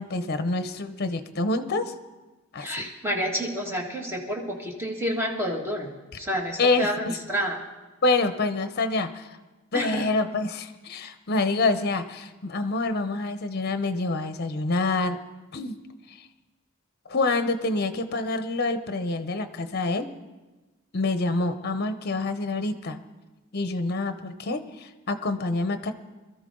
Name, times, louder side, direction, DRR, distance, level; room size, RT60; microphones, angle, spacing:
voice 1, 0.0-1.9 2.5-2.8 6.6-7.2 8.0-9.3 9.7-15.2 15.5-15.7 17.1-20.1 20.9-23.0 23.5-25.9, left 3 dB, 50° left, 10 dB, 0.8 m, -27 dB
voice 2, 2.6-5.9 6.2-7.6 9.7-10.1, equal, 10° right, 0 dB, 1.9 m, -29 dB
22.5 x 13.5 x 3.8 m, 1.2 s
head